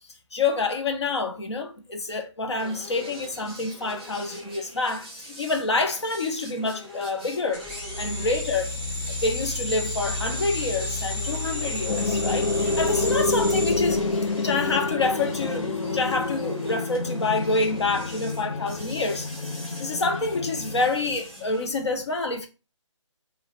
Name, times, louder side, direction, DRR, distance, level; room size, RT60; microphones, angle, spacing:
voice 1, 0.3-7.6 8.0-8.7 9.2-19.3 19.8-22.5, left 3 dB, 55° left, 1.1 m, -27 dB
sound 1, 2.6-21.6, left 1 dB, ahead, 1.1 m, -41 dB
sound 2, 7.5-14.6, left 2 dB, 20° left, 1.9 m, -31 dB
sound 3, 11.9-21.2, left 3 dB, 85° left, 0.4 m, -28 dB
4.7 x 2.8 x 3.1 m
figure-of-eight pair, 155°, 16 cm